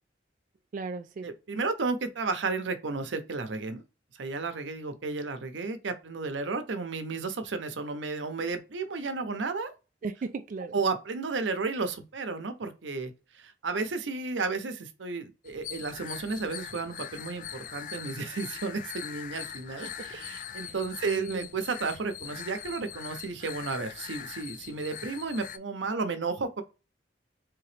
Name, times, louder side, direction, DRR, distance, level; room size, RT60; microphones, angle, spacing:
voice 1, 0.7-1.3 10.0-10.7 19.8-19.9 20.5-20.7 21.0-21.5, right 4 dB, 45° right, 0.3 m, -36 dB
voice 2, 1.2-3.8 4.2-9.7 10.7-26.6, right 4 dB, 85° right, 0.7 m, -33 dB
sound 1, 15.5-25.6, left 9 dB, 45° left, 0.3 m, -42 dB
3.5 x 2.9 x 3.2 m
head